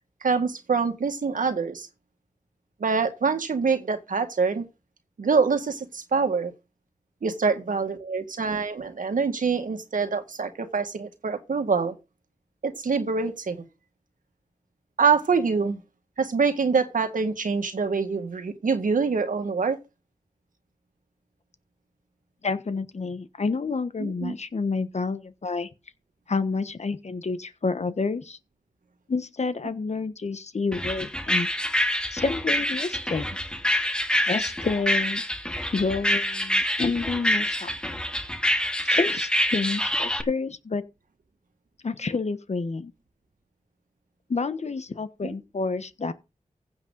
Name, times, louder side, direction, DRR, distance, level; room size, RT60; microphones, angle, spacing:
voice 1, 0.2-1.9 2.8-4.6 5.2-6.5 7.2-12.0 12.6-13.6 15.0-15.8 16.2-19.8 24.0-24.4, right 5 dB, 80° right, 1.8 m, -25 dB
voice 2, 22.4-25.7 26.3-28.4 29.1-31.5 32.1-33.3 34.2-35.2 35.7-37.7 38.8-40.8 41.8-42.9 44.3-46.1, left 4 dB, 55° left, 1.2 m, -29 dB
sound 1, 30.7-40.2, equal, 5° left, 1.7 m, -26 dB
15.5 x 8.0 x 4.0 m
wide cardioid pair, 70°, 14 cm